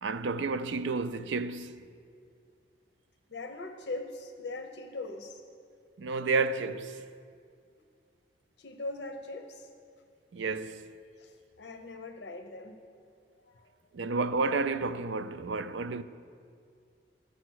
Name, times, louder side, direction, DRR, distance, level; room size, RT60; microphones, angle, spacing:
voice 1, 0.0-1.9 6.0-7.1 10.3-10.9 13.9-16.0, right 4 dB, 85° right, 0.5 m, -31 dB
voice 2, 3.3-5.4 8.6-9.7 11.2-12.8 13.4-13.7, left 2 dB, 65° left, 0.7 m, -41 dB
12.5 x 8.5 x 6.2 m
head